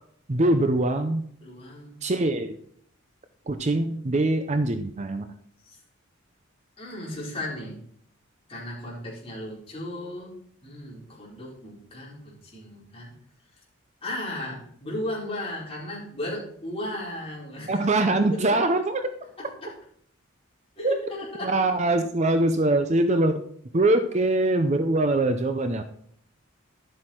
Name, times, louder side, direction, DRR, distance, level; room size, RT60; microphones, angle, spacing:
voice 1, 0.3-1.2 2.0-2.6 3.5-5.3 17.7-19.0 20.8-20.9 21.4-23.4 23.7-25.8, right 2 dB, 30° right, 8 dB, 0.6 m, -23 dB
voice 2, 1.4-2.0 5.6-5.8 6.8-7.8 8.5-10.3 10.6-12.2 12.4-13.1 14.0-17.9 18.1-18.6 19.4-19.7 20.8-21.5, left 1 dB, 25° left, -5 dB, 4.5 m, -35 dB
11.5 x 7.7 x 4.5 m, 0.65 s
head